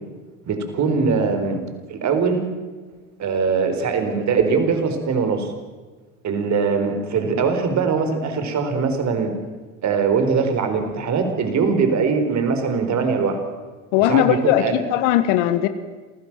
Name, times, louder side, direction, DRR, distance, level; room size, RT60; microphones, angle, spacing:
voice 1, 0.5-1.6 1.9-2.5 3.2-5.5 6.2-9.3 9.8-13.4 14.0-14.8, right 5 dB, 45° right, 7 dB, 4.5 m, -21 dB
voice 2, 13.9-15.7, left 13 dB, 75° left, 11 dB, 1.6 m, -18 dB
27.0 x 15.5 x 7.5 m, 1.4 s
supercardioid pair, 90°, 39 cm